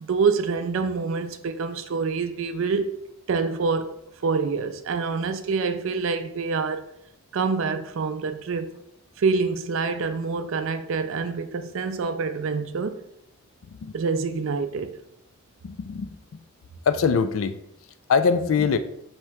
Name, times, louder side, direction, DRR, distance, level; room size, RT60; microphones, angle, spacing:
voice 1, 0.0-3.0 3.3-3.9 4.2-6.9 7.3-8.8 9.2-13.0 13.9-15.0, right 4 dB, 60° right, 0.4 m, -26 dB
voice 2, 15.6-16.2 16.9-17.6 18.1-18.8, left 5 dB, 65° left, 0.3 m, -22 dB
3.2 x 2.9 x 4.7 m
head